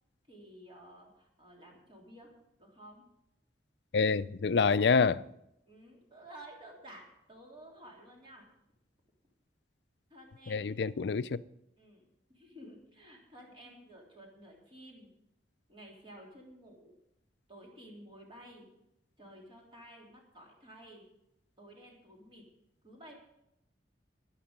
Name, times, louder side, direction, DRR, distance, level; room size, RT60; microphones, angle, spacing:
voice 1, 0.3-2.3 2.6-3.0 5.7-8.5 10.1-10.8 11.8-15.1 15.7-17.0 17.5-18.7 19.2-21.0 21.6-22.4 22.8-23.1, right 1 dB, 30° right, 3.4 m, -53 dB
voice 2, 3.9-5.2 10.5-11.4, left 5 dB, 65° left, 0.5 m, -27 dB
14.5 x 11.0 x 5.3 m
head